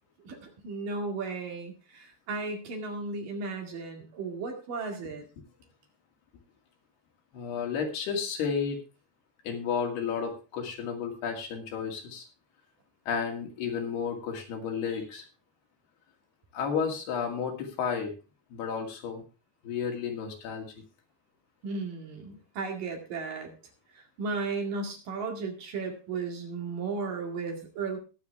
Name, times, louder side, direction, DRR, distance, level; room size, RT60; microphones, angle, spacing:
voice 1, 0.3-5.2 21.6-23.5 24.2-28.0, right 4 dB, 60° right, 2 dB, 3.6 m, -35 dB
voice 2, 7.3-8.8 9.4-12.3 13.1-15.2 16.5-18.1 18.5-19.2 19.6-20.7, left 6 dB, 75° left, 2 dB, 4.3 m, -32 dB
21.0 x 7.5 x 3.4 m, 0.33 s
omnidirectional pair, 4.7 m